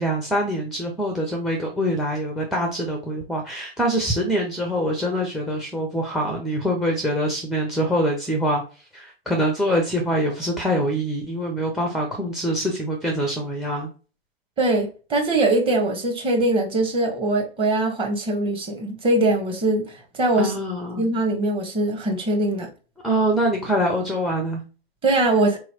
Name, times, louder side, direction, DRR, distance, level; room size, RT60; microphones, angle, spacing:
voice 1, 0.0-8.6 8.9-13.9 20.4-21.0 23.0-24.6, equal, ahead, 0.5 m, -24 dB
voice 2, 14.6-20.5 21.0-22.7 25.0-25.6, right 2 dB, 15° right, 1.1 m, -22 dB
4.0 x 3.0 x 2.8 m
hypercardioid pair, 125°, 30 cm